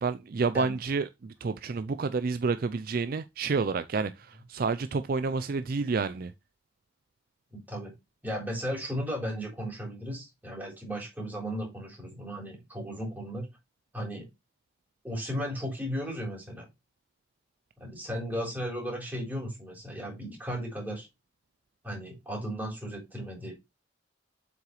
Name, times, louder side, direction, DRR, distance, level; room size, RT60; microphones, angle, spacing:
voice 1, 0.0-6.3, right 4 dB, 50° right, 0.4 m, -29 dB
voice 2, 7.5-7.9 8.2-13.5 13.9-14.3 15.0-16.7 17.8-21.1 21.8-23.5, equal, 10° right, 3.7 m, -35 dB
7.6 x 5.9 x 3.1 m
head